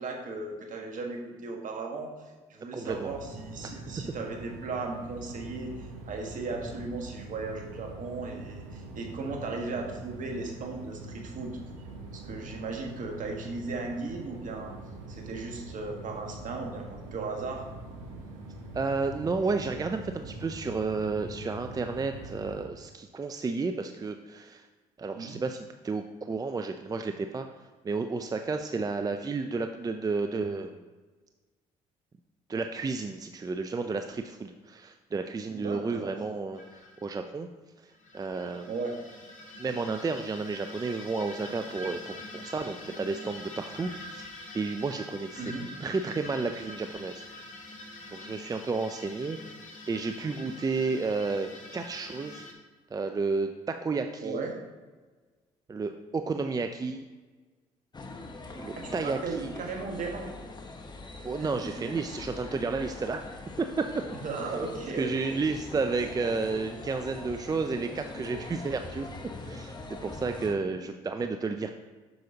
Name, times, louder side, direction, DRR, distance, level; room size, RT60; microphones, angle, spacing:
voice 1, 0.0-2.1 2.5-11.9 12.1-14.7 15.1-16.9 17.1-17.6 25.1-25.4 35.5-36.1 38.7-39.0 45.4-45.7 54.2-54.6 58.7-60.3 61.4-61.9 64.2-65.4, right 3 dB, 55° right, 2 dB, 1.6 m, -36 dB
voice 2, 2.7-3.1 3.7-3.9 18.7-24.7 25.0-27.4 27.8-30.8 32.5-37.5 37.8-38.7 39.6-44.3 44.5-45.5 45.8-47.2 48.1-49.4 49.9-52.4 52.9-54.4 55.7-57.0 58.6-59.5 61.2-63.2 63.6-64.0 64.9-69.1 69.4-71.7, right 4 dB, 25° right, 7 dB, 0.5 m, -32 dB
sound 1, 2.8-22.6, right 2 dB, 90° right, 1.0 m, -43 dB
sound 2, 36.5-37.0 37.9-52.5, left 1 dB, 55° left, 1.4 m, -45 dB
sound 3, 57.9-70.5, left 3 dB, 25° left, 1.0 m, -42 dB
7.8 x 6.5 x 2.9 m, 1.3 s
hypercardioid pair, 60°, 16 cm